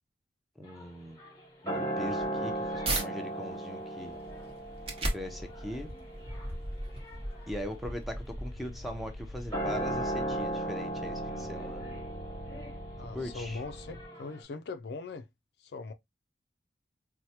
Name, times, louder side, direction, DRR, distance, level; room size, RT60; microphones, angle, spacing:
voice 1, 0.6-1.2 1.6-4.2 5.1-5.9 7.5-11.8 13.1-13.6, equal, ahead, 0.5 m, -40 dB
sound 1, 0.7-14.4, right 1 dB, 20° left, 1.0 m, -37 dB
sound 2, 2.1-3.1 3.6-8.9, right 1 dB, 30° right, 0.9 m, -37 dB
sound 3, 8.2-14.0, equal, 65° right, 0.6 m, -45 dB
voice 2, 13.0-15.3 15.6-15.9, left 3 dB, 60° left, 0.3 m, -40 dB
4.4 x 2.1 x 2.8 m
head